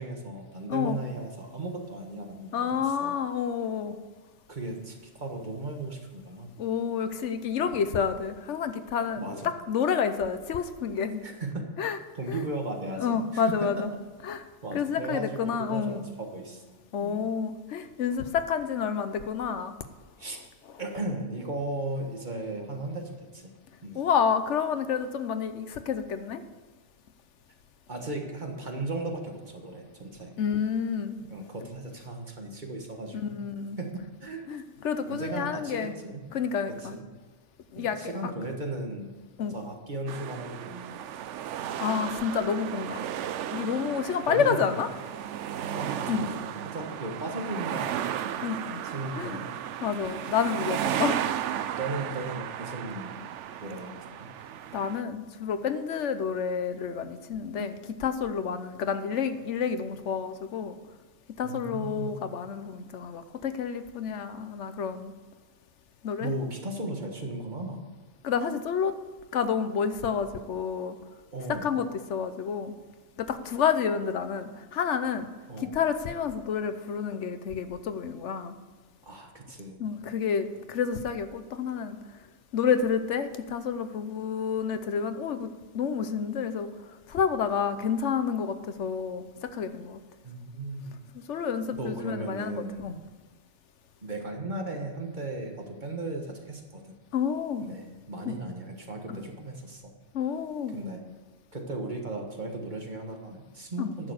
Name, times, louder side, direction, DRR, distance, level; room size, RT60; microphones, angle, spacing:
voice 1, 0.0-3.1 4.5-6.5 7.7-7.8 9.2-9.5 11.2-11.7 12.1-13.8 14.6-17.3 20.2-20.4 20.8-23.5 23.8-24.0 27.9-30.3 31.2-33.4 33.8-34.4 35.1-36.3 36.9-37.0 37.8-39.2 39.5-41.0 44.3-44.7 45.7-48.1 48.8-49.5 51.7-53.1 53.6-54.3 57.6-57.7 61.4-62.2 66.2-67.8 71.3-71.7 73.4-73.6 75.5-75.7 77.1-77.2 79.0-79.9 90.2-90.9 91.7-92.9 94.0-96.9 97.6-99.9 100.7-101.0 101.5-104.1, right 2 dB, 40° right, 2 dB, 1.6 m, -36 dB
voice 2, 2.5-4.0 6.6-9.4 9.7-11.2 11.8-12.0 12.3-12.5 13.0-13.9 14.2-14.4 14.7-16.0 16.9-19.7 20.7-20.8 23.9-26.4 30.4-31.2 33.1-33.8 34.5-35.9 36.3-37.0 37.7-38.1 39.4-39.6 41.8-43.0 43.5-44.9 46.1-46.3 48.4-48.8 49.2-49.4 49.8-51.2 54.7-60.8 61.4-65.1 66.0-66.3 68.2-68.9 69.3-71.0 71.5-72.7 73.2-75.3 75.6-78.6 79.8-82.0 82.5-86.7 87.1-90.0 91.3-93.0 97.1-97.7 98.2-98.4 99.1-99.2 100.1-100.8 103.8-103.9, left 7 dB, 80° left, 10 dB, 1.1 m, -29 dB
sound 1, 40.1-55.0, right 10 dB, 85° right, 0.9 m, -34 dB
10.5 x 6.8 x 7.9 m, 1.3 s
omnidirectional pair, 1.2 m